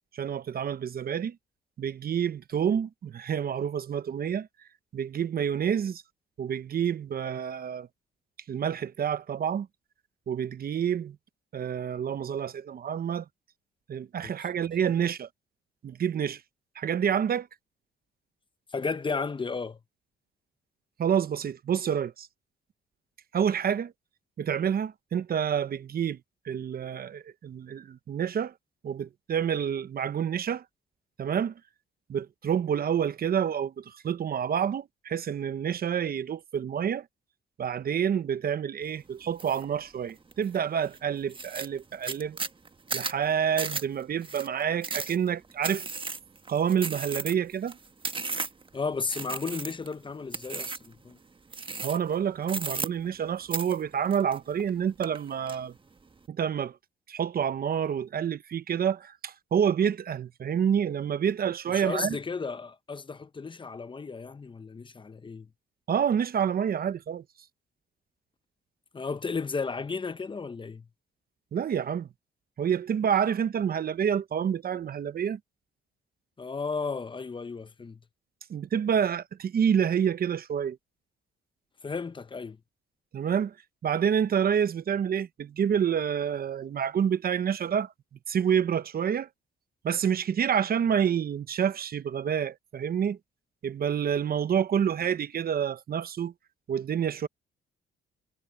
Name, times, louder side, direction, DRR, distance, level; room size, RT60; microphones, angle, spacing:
voice 1, 0.1-1.4 1.8-4.5 4.9-6.0 6.4-7.9 8.5-9.7 10.3-11.2 11.5-13.2 13.9-15.3 15.8-16.4 16.8-17.5 21.0-22.3 23.3-23.9 24.4-26.2 26.4-28.5 28.8-30.6 31.2-31.5 32.1-37.1 37.6-42.4 42.9-45.9 46.5-47.8 51.8-55.7 56.3-56.8 57.1-62.2 65.9-67.2 71.5-72.1 72.6-75.4 78.5-80.8 83.1-83.5 83.8-87.9 88.3-89.3 89.8-93.2 93.6-96.3 96.7-97.3, right 8 dB, 50° right, 0.9 m, -28 dB
voice 2, 18.7-19.8 48.7-51.2 61.7-65.5 68.9-70.9 76.4-78.0 81.8-82.6, left 4 dB, 25° left, 0.9 m, -34 dB
sound 1, 39.4-39.6 40.1-40.6 40.9-41.0 41.3-48.7 49.1-49.9 50.3-50.9 51.5-52.1 52.4-53.2 53.5-54.7 55.0-55.6, right 4 dB, 25° right, 1.4 m, -35 dB
cardioid pair, 90°, 20 cm